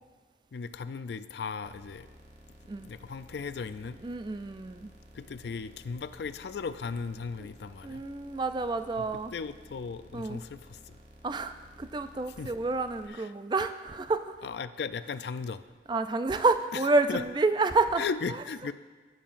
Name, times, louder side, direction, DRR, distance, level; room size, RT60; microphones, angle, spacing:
voice 1, 0.5-2.1 2.8-4.0 5.1-8.0 9.0-9.1 9.3-11.0 12.4-12.5 13.2-13.3 14.4-15.7 17.1-17.2 18.0-18.7, left 5 dB, 70° left, 12 dB, 0.4 m, -36 dB
sound 1, 1.6-13.1, equal, 40° right, 0.9 m, -54 dB
voice 2, 4.0-4.9 7.4-7.5 7.8-9.3 10.1-10.4 11.2-14.5 15.9-18.0, right 3 dB, 25° right, 10 dB, 0.3 m, -29 dB
17.5 x 7.4 x 2.5 m, 1.4 s
head